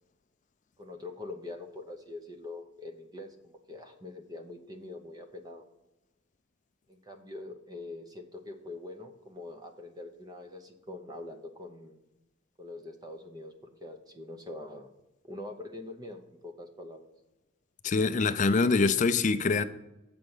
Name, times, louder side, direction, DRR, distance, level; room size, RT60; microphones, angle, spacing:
voice 1, 0.8-5.6 6.9-12.0 12.6-14.9 15.2-17.0, left 2 dB, 20° right, 0.7 m, -44 dB
voice 2, 17.8-19.6, left 4 dB, 40° left, 0.4 m, -24 dB
7.8 x 4.6 x 7.1 m
head